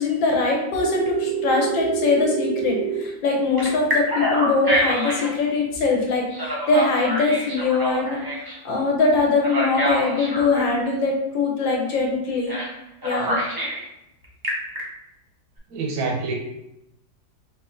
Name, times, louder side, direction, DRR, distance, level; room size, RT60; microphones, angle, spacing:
voice 1, 0.0-12.6 13.0-13.4, left 3 dB, 80° left, 0 dB, 1.6 m, -22 dB
Telephone, 0.8-3.0 3.6-5.3 6.3-8.6 9.4-10.7 12.5-12.7 13.0-13.8 14.2-14.8, right 2 dB, 25° right, 0.4 m, -26 dB
voice 2, 15.7-16.3, right 3 dB, 80° right, -1 dB, 1.7 m, -26 dB
3.7 x 2.9 x 3.6 m, 0.85 s
omnidirectional pair, 2.1 m